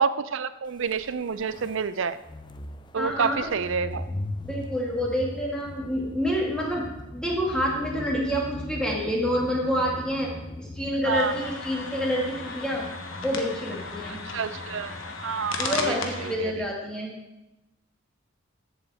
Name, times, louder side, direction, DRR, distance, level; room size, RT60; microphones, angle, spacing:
voice 1, 0.0-2.2 2.9-4.0 11.1-11.3 14.3-15.0 15.2-16.5, right 6 dB, 70° right, 14 dB, 0.5 m, -28 dB
sound 1, 0.8-16.7, left 1 dB, 20° left, 0.5 m, -40 dB
voice 2, 3.0-3.6 4.4-6.9 7.1-10.3 10.6-12.9 13.2-14.2 15.6-17.1, equal, 5° left, -3 dB, 2.1 m, -28 dB
sound 2, 11.1-16.4, left 4 dB, 80° left, 1.3 m, -36 dB
14.5 x 7.7 x 3.6 m, 0.94 s
head